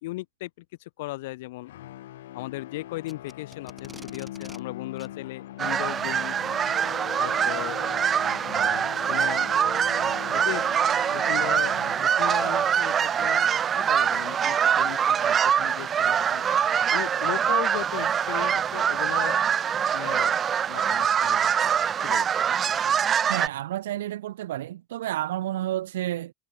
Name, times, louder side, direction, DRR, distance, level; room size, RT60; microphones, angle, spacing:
voice 1, 0.0-1.7 2.3-6.3 7.2-7.8 8.5-9.5 10.3-10.7 11.1-16.5 16.9-19.4 19.9-20.3 20.7-21.5 22.0-22.3, left 19 dB, 70° left, 5.0 m, -37 dB
sound 1, 1.6-12.4, left 14 dB, 85° left, 3.8 m, -41 dB
Packing tape duct tape, 3.0-4.6 5.0-5.1 5.9-6.1 7.3-7.5 8.2-8.3 8.9-9.0 10.6-10.9 11.9-12.0 12.4-12.5 13.0-16.9, right 1 dB, 5° right, 4.9 m, -52 dB
sound 2, 5.6-23.5, right 8 dB, 25° right, 1.1 m, -24 dB
voice 2, 23.3-26.3, right 13 dB, 90° right, 2.5 m, -30 dB
supercardioid pair, 145°, 0 cm